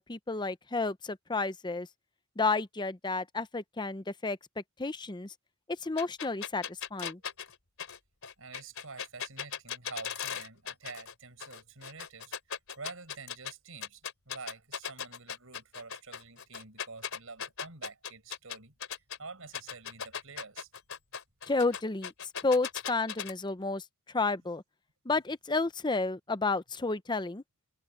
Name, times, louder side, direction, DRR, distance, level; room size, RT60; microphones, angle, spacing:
voice 1, 0.0-1.9 2.4-4.4 4.8-5.3 5.8-6.6 6.9-7.2 21.5-22.1 22.4-23.8 24.1-24.6 25.1-27.4, left 3 dB, 20° left, 0.7 m, -31 dB
sound 1, 6.0-11.1 11.4-13.5 13.8-19.2 19.5-23.3, left 8 dB, 65° left, 3.7 m, -38 dB
voice 2, 8.4-18.7 19.2-20.7, right 4 dB, 70° right, 6.5 m, -48 dB
head